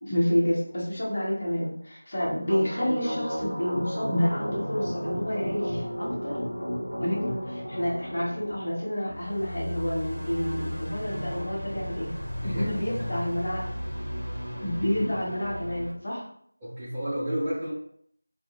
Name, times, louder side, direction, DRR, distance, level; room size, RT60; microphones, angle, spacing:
voice 1, 0.0-6.4 7.0-12.1 12.5-13.7 14.6-16.2, equal, 40° left, -6 dB, 0.9 m, -29 dB
sound 1, 2.2-15.9, equal, 80° left, 0.9 m, -34 dB
voice 2, 12.4-13.3 16.6-17.7, equal, 10° right, -14 dB, 0.5 m, -32 dB
2.3 x 2.1 x 2.9 m, 0.65 s
figure-of-eight pair, 175°, 0 cm